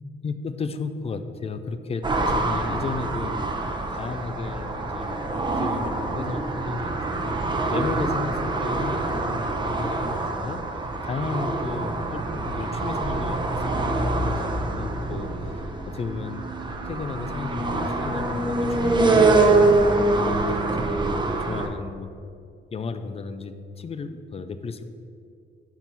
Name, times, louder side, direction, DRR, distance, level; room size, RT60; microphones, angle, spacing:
voice 1, 0.2-3.4 3.9-5.2 5.6-7.4 7.7-10.6 11.0-15.3 15.9-16.5 16.9-22.1 22.7-24.8, left 4 dB, 30° left, 10 dB, 0.4 m, -34 dB
sound 1, 2.0-21.7, right 2 dB, 25° right, 0.7 m, -25 dB
5.9 x 4.5 x 5.3 m, 2.3 s
cardioid pair, 90°, 20 cm